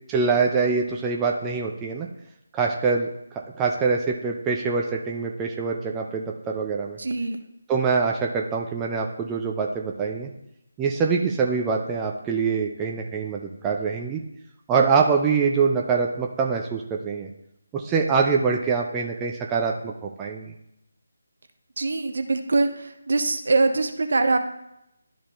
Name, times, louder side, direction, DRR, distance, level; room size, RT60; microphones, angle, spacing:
voice 1, 0.1-2.1 2.5-3.1 3.6-7.0 7.7-10.3 10.8-14.2 14.7-17.3 17.7-20.5, right 5 dB, 10° right, 0 dB, 0.6 m, -24 dB
voice 2, 7.0-7.4 21.8-22.7 23.1-24.5, right 3 dB, 60° right, 7 dB, 0.8 m, -22 dB
12.0 x 4.1 x 3.1 m, 0.84 s
figure-of-eight pair, 155°, 0 cm